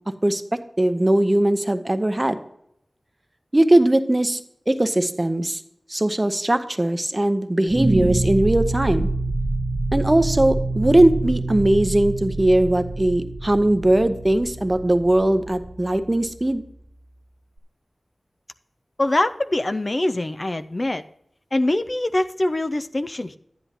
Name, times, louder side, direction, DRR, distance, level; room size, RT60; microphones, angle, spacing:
voice 1, 0.8-2.4 3.5-4.4 4.7-5.6 5.9-9.1 9.9-16.6, right 1 dB, 25° right, 10 dB, 0.7 m, -19 dB
sound 1, 7.7-16.8, right 2 dB, 85° right, 1.2 m, -27 dB
voice 2, 19.0-21.0 21.5-23.4, left 1 dB, 40° left, 10 dB, 0.4 m, -23 dB
12.0 x 10.0 x 2.9 m, 0.76 s
wide cardioid pair, 75°, 0 cm